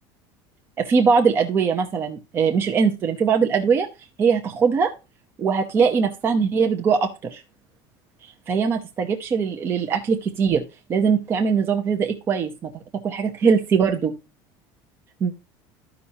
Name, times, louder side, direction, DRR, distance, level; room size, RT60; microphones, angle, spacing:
voice 1, 0.8-3.9 4.2-4.9 5.4-7.4 8.5-10.6 10.9-12.7 13.0-14.1 15.2-15.3, right 6 dB, 25° right, 3 dB, 0.8 m, -21 dB
13.0 x 5.5 x 2.8 m, 0.29 s
cardioid pair, 170°, 10 cm